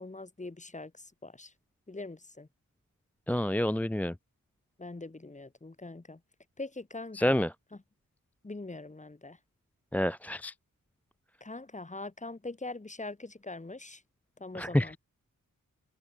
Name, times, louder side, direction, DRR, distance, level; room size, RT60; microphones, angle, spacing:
voice 1, 0.0-1.5 1.9-2.5 4.8-6.2 6.6-7.5 8.4-9.4 11.4-14.0 14.4-15.0, left 2 dB, 20° left, 2.1 m, -42 dB
voice 2, 3.3-4.1 7.1-7.5 9.9-10.5 14.5-15.0, left 1 dB, 5° left, 0.4 m, -28 dB
wide cardioid pair, 135°, 34 cm